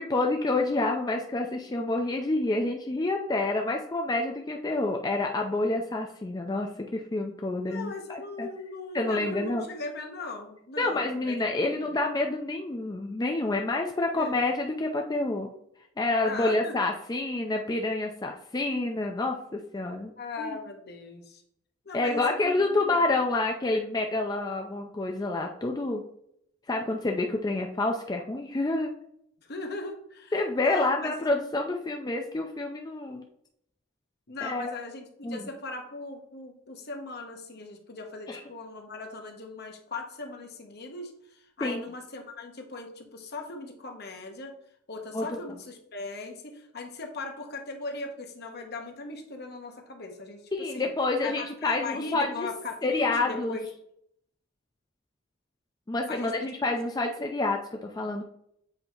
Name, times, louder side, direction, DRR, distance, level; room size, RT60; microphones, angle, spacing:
voice 1, 0.0-8.5 8.9-9.6 10.8-15.5 16.0-20.1 20.4-20.6 21.9-26.0 26.7-28.9 30.3-33.2 34.4-34.7 35.2-35.5 38.3-38.4 41.6-41.8 45.1-45.4 50.5-52.5 52.8-53.6 55.9-58.2, left 2 dB, 20° left, 2 dB, 0.4 m, -28 dB
voice 2, 7.6-11.9 14.1-14.4 16.2-16.7 20.2-21.4 21.8-23.0 29.5-31.1 34.3-44.5 44.9-50.9 51.2-53.7 56.1-56.5, left 3 dB, 55° left, 3 dB, 1.0 m, -39 dB
7.7 x 2.8 x 4.4 m, 0.72 s
head